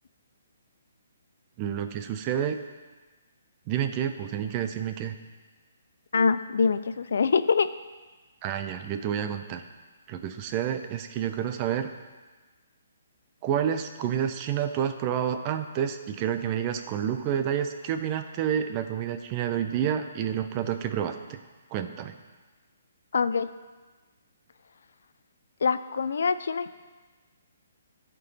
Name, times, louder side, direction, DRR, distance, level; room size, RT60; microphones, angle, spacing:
voice 1, 1.6-2.6 3.7-5.2 8.4-9.6 10.1-11.9 13.4-21.4 21.7-22.2, right 9 dB, 25° right, 8 dB, 0.5 m, -29 dB
voice 2, 6.1-7.7 23.1-23.5 25.6-26.7, left 5 dB, 70° left, 13 dB, 0.4 m, -24 dB
13.0 x 4.5 x 4.2 m, 1.3 s
hypercardioid pair, 160°, 0 cm